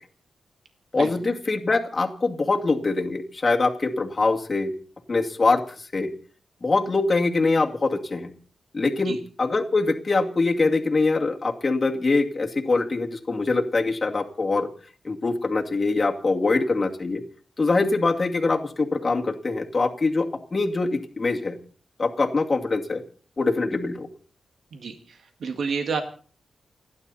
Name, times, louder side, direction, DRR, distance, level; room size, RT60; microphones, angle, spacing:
voice 1, 0.9-4.7 5.1-6.1 6.6-8.3 8.7-14.7 15.0-17.2 17.6-21.6 22.0-23.0 23.4-24.1, left 3 dB, 30° left, 1 dB, 2.3 m, -23 dB
voice 2, 25.4-26.0, right 5 dB, 75° right, 6 dB, 1.9 m, -28 dB
29.5 x 10.5 x 4.2 m, 0.43 s
wide cardioid pair, 110°, 0 cm